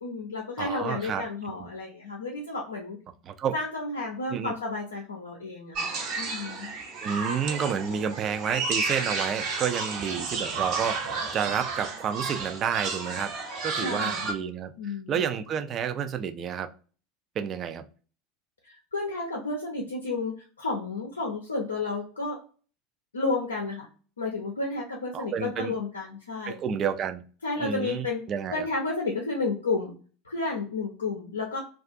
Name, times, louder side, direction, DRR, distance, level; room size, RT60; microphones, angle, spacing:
voice 1, 0.0-3.0 3.5-6.8 13.8-14.5 14.8-15.2 18.6-22.4 23.1-23.9 24.2-26.6 27.4-28.2 28.5-29.9 30.2-31.6, left 3 dB, 85° left, 0.5 m, -32 dB
voice 2, 0.6-1.2 1.6-1.7 3.3-3.6 4.3-4.5 7.0-13.3 13.6-16.7 17.4-17.8 25.1-25.7 26.5-27.2 27.6-28.6, right 7 dB, 40° right, 0.3 m, -30 dB
sound 1, 5.7-14.3, right 4 dB, 55° right, 0.7 m, -32 dB
2.4 x 2.3 x 2.4 m
figure-of-eight pair, 75°, 0 cm